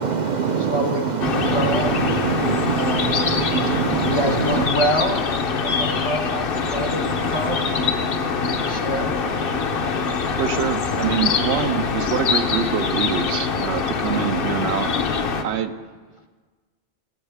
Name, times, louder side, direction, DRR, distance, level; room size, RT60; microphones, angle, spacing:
voice 1, 0.0-4.7, right 6 dB, 55° right, 6 dB, 0.5 m, -24 dB
voice 2, 0.7-2.1 2.8-3.3 4.1-8.0 8.3-9.2, equal, 35° left, 3 dB, 0.6 m, -27 dB
sound 1, 1.2-15.4, left 5 dB, 60° left, 0.9 m, -24 dB
sound 2, 4.6-11.4, left 2 dB, 90° left, 1.8 m, -44 dB
voice 3, 10.4-14.9 15.4-15.7, right 8 dB, 80° right, 10 dB, 0.9 m, -25 dB
17.0 x 7.9 x 3.4 m, 1.4 s
omnidirectional pair, 1.1 m